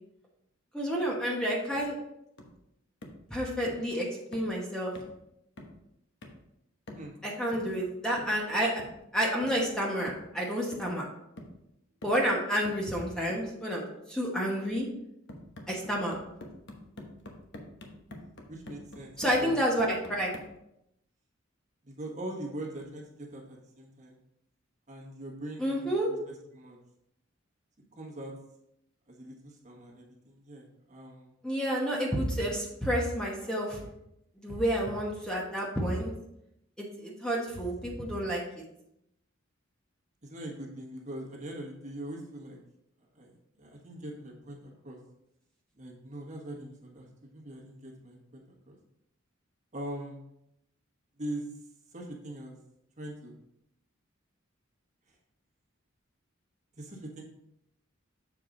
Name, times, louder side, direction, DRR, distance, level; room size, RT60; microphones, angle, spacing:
voice 1, 0.7-1.9 3.3-4.1 4.3-4.9 7.2-8.8 9.1-11.1 12.0-14.9 15.7-16.2 19.2-20.3 25.6-26.1 31.4-33.8 34.4-36.1 36.8-38.6, equal, 5° left, -3 dB, 1.0 m, -30 dB
sound 1, 1.7-1.9 2.4-2.6 3.0-3.3 3.7-3.9 4.3-4.6 4.9-5.2 5.6-5.8 6.2-6.5 6.9-7.2 7.5-7.8 8.2-8.4 8.8-9.0 9.4-9.7 10.1-10.3 10.7-11.1 11.4-11.6 12.0-12.3 12.6-12.9 13.3-13.5 15.3-20.6, left 1 dB, 60° left, 1.0 m, -47 dB
voice 2, 18.5-19.1 19.4-19.6 21.8-24.2 24.9-26.0 26.5-26.8 27.9-28.3 29.1-31.3 40.2-42.6 43.1-45.0 45.7-48.8 49.7-50.2 51.2-51.5 51.9-52.6 53.0-53.3 55.1-55.2 56.8-57.2, right 1 dB, 35° right, -1 dB, 1.4 m, -42 dB
7.2 x 4.7 x 3.8 m, 0.82 s
head